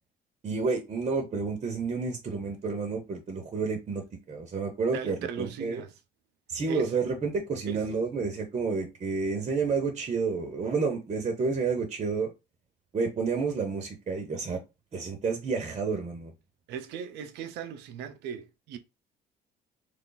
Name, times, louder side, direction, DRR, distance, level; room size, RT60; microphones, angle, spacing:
voice 1, 0.4-5.8 6.5-12.3 12.9-14.6 14.9-16.3, right 4 dB, 35° right, 0.9 m, -30 dB
voice 2, 4.9-5.9 6.6-6.9 7.7-7.8 16.7-18.8, right 7 dB, 85° right, 0.6 m, -38 dB
3.2 x 2.4 x 3.9 m
cardioid pair, 110°, 17 cm